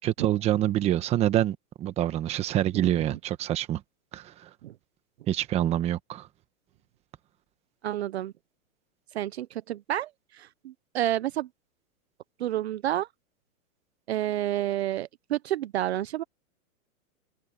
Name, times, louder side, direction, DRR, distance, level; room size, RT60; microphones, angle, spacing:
voice 1, 0.0-3.8 4.1-4.2 5.3-6.3, right 12 dB, 15° right, 1.2 m, -26 dB
voice 2, 2.7-3.2 4.6-4.7 7.8-8.3 9.1-11.5 12.4-13.1 14.1-16.2, right 13 dB, 50° right, 0.8 m, -30 dB
open air
hypercardioid pair, 160°, 43 cm